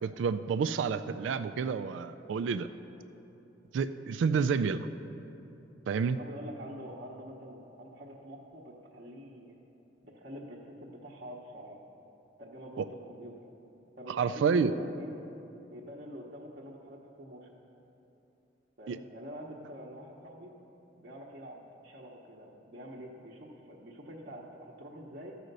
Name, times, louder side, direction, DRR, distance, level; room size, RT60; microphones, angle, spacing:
voice 1, 0.0-2.7 3.7-4.9 5.9-6.2 12.8-12.9 14.1-14.8 18.9-19.0, right 5 dB, 75° right, 11 dB, 0.3 m, -29 dB
voice 2, 6.1-9.6 10.0-11.8 12.4-13.3 14.0-15.1 15.7-17.5 18.8-20.5 21.0-25.4, equal, 50° right, -6 dB, 0.9 m, -46 dB
13.0 x 5.0 x 6.6 m, 2.9 s
head